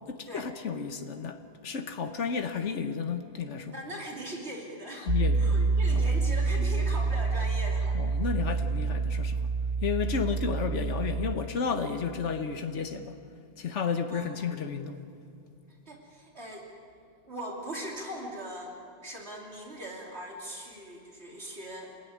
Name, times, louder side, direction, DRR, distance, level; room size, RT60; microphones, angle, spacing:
voice 1, 0.0-3.7 5.0-5.6 5.9-6.1 7.9-9.4 9.8-13.2 13.6-15.0, left 6 dB, 85° left, 1.5 m, -32 dB
voice 2, 3.7-5.1 5.3-8.0 14.1-14.5 15.9-16.7 17.3-21.9, right 1 dB, 65° right, 3.3 m, -40 dB
Piano, 5.1-11.4, right 3 dB, 50° right, 1.6 m, -27 dB
28.5 x 20.0 x 9.6 m
omnidirectional pair, 1.2 m